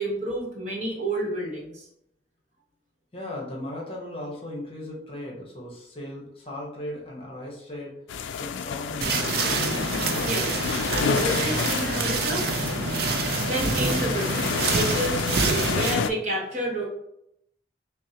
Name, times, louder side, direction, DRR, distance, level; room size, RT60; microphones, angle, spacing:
voice 1, 0.0-1.9 10.2-12.4 13.4-16.9, right 1 dB, 40° right, -2 dB, 1.0 m, -30 dB
voice 2, 3.1-7.9 8.3-9.6, left 1 dB, 30° left, -2 dB, 1.0 m, -37 dB
sound 1, 8.1-16.1, left 6 dB, 85° left, 0.3 m, -29 dB
sound 2, 9.0-15.9, right 4 dB, 55° right, 0.5 m, -27 dB
6.0 x 2.0 x 2.8 m, 0.76 s
head